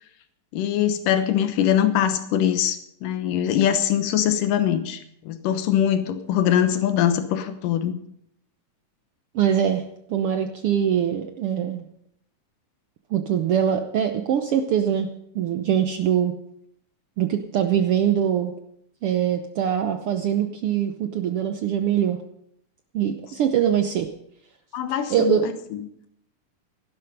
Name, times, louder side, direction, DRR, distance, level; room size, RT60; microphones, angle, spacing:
voice 1, 0.5-8.0 24.7-25.9, left 10 dB, 90° left, 9 dB, 2.7 m, -23 dB
voice 2, 9.3-9.8 10.1-11.9 13.1-15.1 15.3-16.3 17.2-18.5 19.0-22.2 22.9-24.1 25.1-25.5, right 9 dB, 90° right, 6 dB, 1.2 m, -23 dB
16.0 x 12.0 x 5.3 m, 0.72 s
omnidirectional pair, 3.7 m